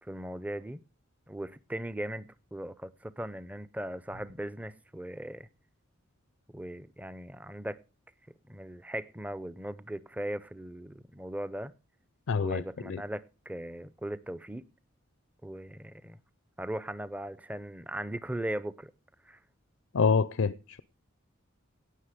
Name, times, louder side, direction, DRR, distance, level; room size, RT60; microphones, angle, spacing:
voice 1, 0.0-0.8 1.3-5.5 6.5-7.8 8.5-11.7 12.4-14.6 15.4-16.2 16.6-18.9 19.3-19.4, right 1 dB, 5° right, 0.6 m, -38 dB
voice 2, 12.3-13.0 19.9-20.8, left 5 dB, 75° left, 0.5 m, -27 dB
17.5 x 6.4 x 5.1 m
head